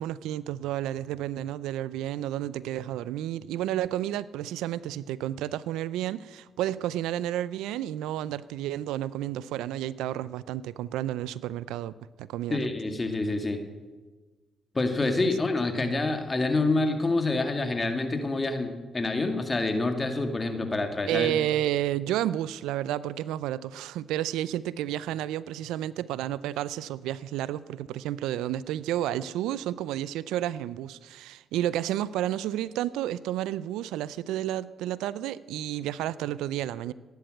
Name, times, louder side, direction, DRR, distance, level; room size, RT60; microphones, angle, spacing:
voice 1, 0.0-12.7 21.1-36.9, right 12 dB, 80° right, 19 dB, 0.4 m, -31 dB
voice 2, 12.5-13.6 14.7-21.3, left 2 dB, 30° left, 6 dB, 2.2 m, -27 dB
16.0 x 10.5 x 7.8 m, 1.3 s
supercardioid pair, 50°, 0 cm